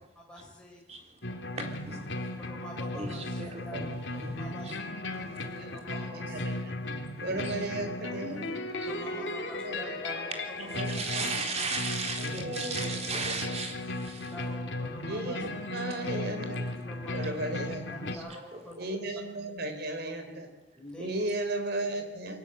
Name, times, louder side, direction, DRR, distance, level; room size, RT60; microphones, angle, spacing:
voice 1, 0.2-0.8 2.2-3.3 3.6-3.9 4.4-4.7 5.2-6.4 8.2-8.5 8.8-10.7 14.2-15.4 16.7-17.2 17.9-18.7 20.7-21.1, equal, 5° left, -2 dB, 5.5 m, -46 dB
voice 2, 0.9-1.2 1.5-2.5 2.9-3.9 4.2-4.7 5.1-6.0 7.1-7.6 8.0-9.0 10.3-14.4 15.4-15.5 15.9-16.1 18.0-18.6, right 3 dB, 35° right, 3 dB, 3.9 m, -38 dB
sound 1, 1.2-18.2, left 2 dB, 70° left, 2.8 m, -36 dB
voice 3, 5.6-6.7 7.2-8.4 9.1-9.9 10.7-11.4 12.2-12.9 13.3-13.4 15.1-16.7 17.1-17.9 18.8-20.5 21.0-22.4, right 2 dB, 60° right, 7 dB, 4.0 m, -35 dB
23.5 x 19.0 x 8.1 m, 1.1 s
head